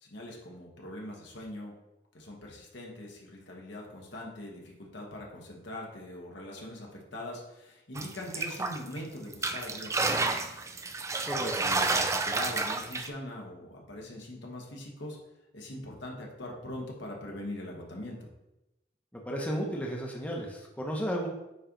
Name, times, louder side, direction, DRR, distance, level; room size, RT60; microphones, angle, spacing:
voice 1, 0.0-1.7 2.1-10.5 11.4-15.2 15.5-18.3, left 1 dB, 75° left, -1 dB, 1.4 m, -42 dB
sound 1, 7.9-9.0 9.3-13.1, right 3 dB, 15° right, 0.4 m, -30 dB
voice 2, 19.1-21.3, equal, 10° left, -1 dB, 0.8 m, -33 dB
9.2 x 3.1 x 3.8 m, 0.93 s
head